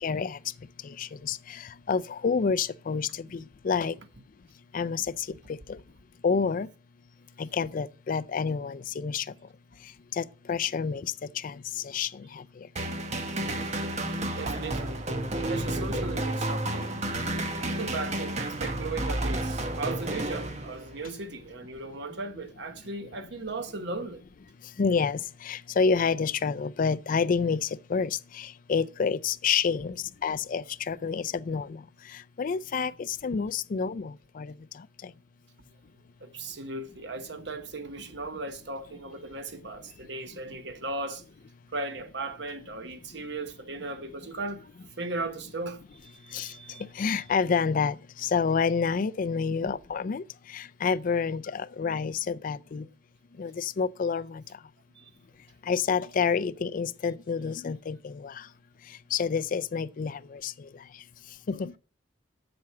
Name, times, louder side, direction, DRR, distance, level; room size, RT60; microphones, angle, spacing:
voice 1, 0.0-0.4 0.8-4.0 4.7-5.8 6.2-6.7 7.4-9.3 10.1-11.1 11.4-12.4 24.8-29.9 30.2-31.8 32.4-34.5 46.3-46.5 47.0-50.2 50.5-52.9 53.4-54.4 55.7-58.4 59.1-60.5 61.5-61.7, left 5 dB, 45° left, 0.4 m, -28 dB
sound 1, 12.8-21.1, right 1 dB, 40° right, 1.2 m, -31 dB
voice 2, 14.4-15.0 15.5-17.0 17.6-24.2 29.8-29.9 32.9-33.0 36.2-41.2 41.7-44.7 45.0-46.8 47.1-47.2 49.5-49.7 54.9-55.1, right 2 dB, 65° right, 1.1 m, -37 dB
7.8 x 7.1 x 5.8 m
head